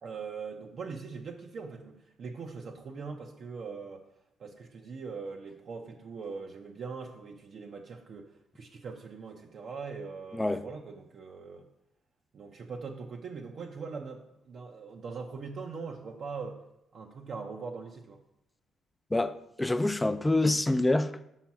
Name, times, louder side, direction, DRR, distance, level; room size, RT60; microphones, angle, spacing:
voice 1, 0.0-4.0 4.4-11.6 12.3-16.6 16.9-18.2, right 5 dB, 55° right, 0.7 m, -41 dB
voice 2, 19.1-21.2, left 2 dB, 15° left, 0.4 m, -26 dB
5.8 x 5.1 x 5.9 m
cardioid pair, 90°, 0 cm